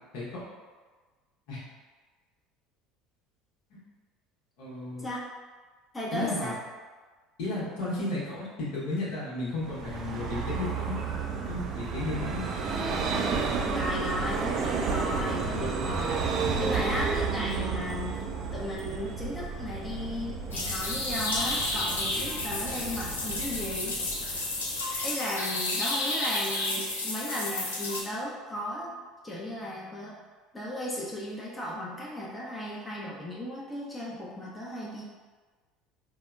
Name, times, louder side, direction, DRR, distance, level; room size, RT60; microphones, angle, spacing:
voice 1, 4.6-5.1 6.1-6.5 7.4-11.0 11.5-12.4, left 2 dB, 65° left, -7 dB, 0.9 m, -33 dB
voice 2, 5.9-6.5 8.9-9.0 12.2-12.3 13.7-18.2 18.5-24.0 25.0-29.0 29.2-30.1 30.5-35.0, left 1 dB, 15° left, -5 dB, 0.5 m, -35 dB
Vehicle, 9.6-25.0, right 5 dB, 45° right, 0.3 m, -32 dB
sound 1, 20.5-28.0, left 2 dB, 80° left, 0.4 m, -31 dB
3.7 x 2.1 x 2.3 m, 1.4 s
figure-of-eight pair, 65°, 0 cm